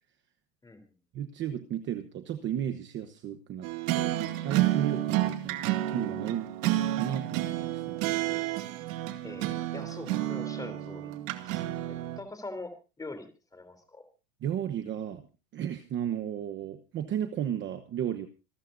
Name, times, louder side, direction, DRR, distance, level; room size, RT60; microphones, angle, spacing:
voice 1, 1.1-4.2 4.4-6.5 6.9-8.5 14.4-15.3 15.5-18.3, right 10 dB, 25° right, 8 dB, 1.0 m, -34 dB
sound 1, 3.6-12.2, right 14 dB, 55° right, 2.2 m, -30 dB
voice 2, 9.2-11.2 11.4-11.6 12.2-13.3 13.5-14.0, left 2 dB, 5° left, 9 dB, 3.4 m, -43 dB
27.5 x 13.0 x 2.6 m, 0.31 s
supercardioid pair, 160°, 47 cm